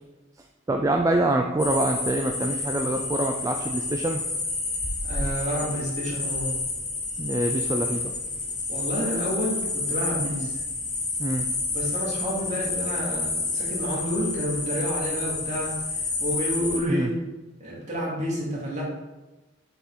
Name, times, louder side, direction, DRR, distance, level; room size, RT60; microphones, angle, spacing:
voice 1, 0.7-4.2 7.2-8.1 11.2-11.5 16.9-17.1, right 1 dB, 15° right, 3 dB, 0.4 m, -25 dB
sound 1, 1.6-16.8, left 3 dB, 40° left, 2.0 m, -30 dB
voice 2, 5.1-6.5 8.7-10.6 11.7-17.2 17.6-18.8, equal, 40° right, -5 dB, 2.2 m, -29 dB
6.5 x 4.4 x 4.6 m, 1.1 s
head